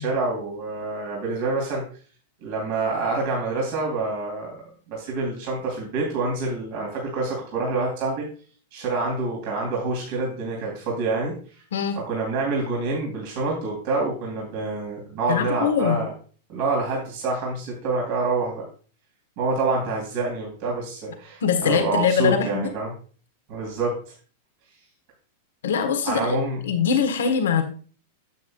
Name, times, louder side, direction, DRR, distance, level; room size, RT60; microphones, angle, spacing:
voice 1, 0.0-1.8 2.4-4.6 4.9-8.3 8.7-11.3 11.9-16.1 16.5-18.7 19.4-22.9 23.5-24.0 26.0-26.6, right 3 dB, 55° right, -2 dB, 3.2 m, -27 dB
voice 2, 15.3-16.0 21.4-22.7 25.6-26.4 26.6-27.6, left 7 dB, 80° left, 6 dB, 1.4 m, -22 dB
9.2 x 7.3 x 2.4 m, 0.41 s
hypercardioid pair, 110°, 0 cm